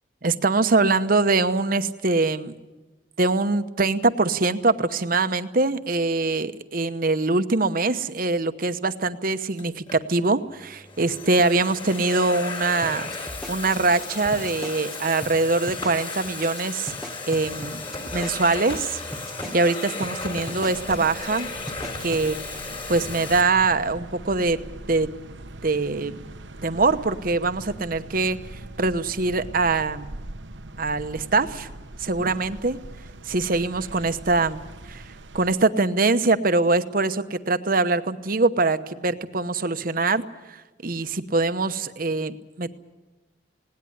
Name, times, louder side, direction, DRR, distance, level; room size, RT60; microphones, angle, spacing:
voice 1, 0.2-2.5 3.2-13.1 13.5-16.9 17.3-17.9 18.1-19.0 19.5-21.5 22.0-22.4 22.9-24.6 24.9-25.1 25.6-26.2 26.6-28.4 28.8-30.1 30.8-31.7 32.0-32.8 33.2-34.6 34.9-35.1 35.3-42.7, right 3 dB, 50° right, 11 dB, 1.0 m, -23 dB
Domestic sounds home sounds, 9.6-10.0 10.7-23.4, left 3 dB, 30° left, 3.5 m, -35 dB
sound 1, 12.8-14.9 15.2-15.3 15.7-16.1 16.4-16.6 16.9-19.7 20.0-20.1 20.5-20.9 21.2-21.4 21.7-22.2, equal, ahead, 1.6 m, -38 dB
sound 2, 20.7-35.6, right 1 dB, 90° right, 1.1 m, -41 dB
19.0 x 18.5 x 10.0 m, 1.1 s
head